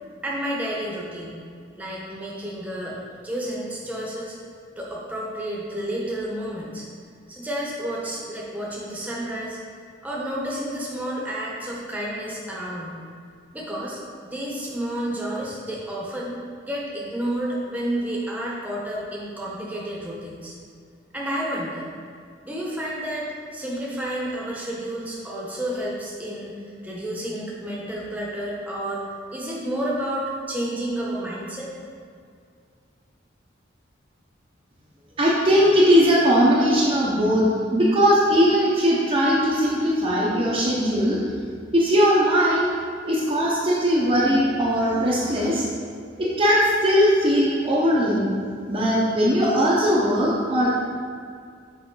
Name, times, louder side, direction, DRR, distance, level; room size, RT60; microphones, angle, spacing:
voice 1, 0.2-1.4 1.8-3.0 3.2-4.4 4.8-6.9 7.3-9.6 10.0-13.0 13.5-14.0 14.2-16.4 16.6-20.5 21.1-21.9 22.4-26.5 26.8-29.0 29.3-31.7, right 1 dB, 10° right, -5 dB, 1.1 m, -30 dB
voice 2, 35.2-37.5 37.7-41.2 41.7-42.7 43.0-45.7 46.2-48.3 48.7-50.9, equal, 30° right, -7 dB, 0.8 m, -19 dB
7.1 x 5.1 x 3.8 m, 2.2 s
head